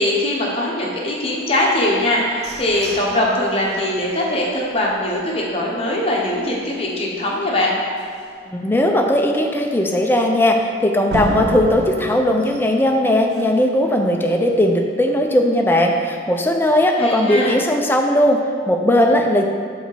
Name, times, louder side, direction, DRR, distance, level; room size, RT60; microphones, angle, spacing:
voice 1, 0.0-7.8 17.0-17.5, left 1 dB, 30° left, -3 dB, 1.0 m, -21 dB
sound 1, 1.8-5.7 6.2-6.3 6.6-7.0 7.4-7.5 8.0-8.1 11.1-13.8, right 2 dB, 55° right, 0.4 m, -32 dB
voice 2, 8.5-19.5, left 1 dB, 10° left, 2 dB, 0.4 m, -18 dB
6.3 x 4.0 x 4.7 m, 2.2 s
head